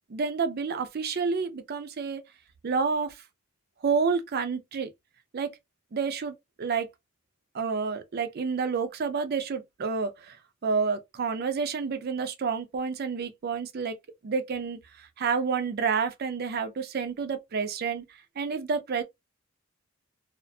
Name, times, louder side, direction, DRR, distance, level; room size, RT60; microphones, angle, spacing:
voice 1, 0.1-2.2 2.6-3.1 3.8-4.9 5.3-5.5 5.9-6.9 7.5-10.4 10.6-13.9 14.2-18.0 18.4-19.0, right 5 dB, 50° right, 0.4 m, -29 dB
2.4 x 2.1 x 2.6 m
head